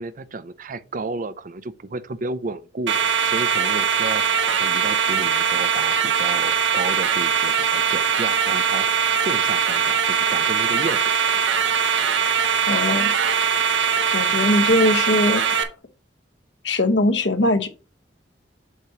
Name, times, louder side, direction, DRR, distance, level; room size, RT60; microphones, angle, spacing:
voice 1, 0.0-11.1, right 3 dB, 45° right, 0.5 m, -32 dB
sound 1, 2.9-15.6, right 7 dB, 85° right, 1.0 m, -21 dB
voice 2, 12.7-13.1 14.1-15.6 16.6-17.7, left 1 dB, 75° left, 1.2 m, -20 dB
8.1 x 2.9 x 5.9 m
head